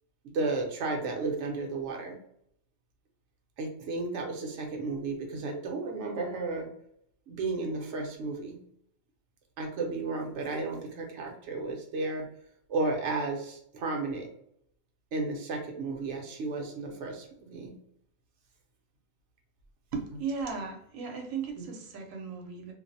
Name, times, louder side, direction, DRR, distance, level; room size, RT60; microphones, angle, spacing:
voice 1, 0.2-2.2 3.6-6.7 7.3-8.6 9.6-12.2 12.7-14.3 15.1-17.7 21.6-21.7, right 3 dB, 70° right, 1 dB, 0.9 m, -33 dB
voice 2, 19.9-22.7, right 5 dB, 85° right, 2 dB, 1.0 m, -36 dB
2.5 x 2.0 x 2.6 m, 0.72 s
omnidirectional pair, 1.3 m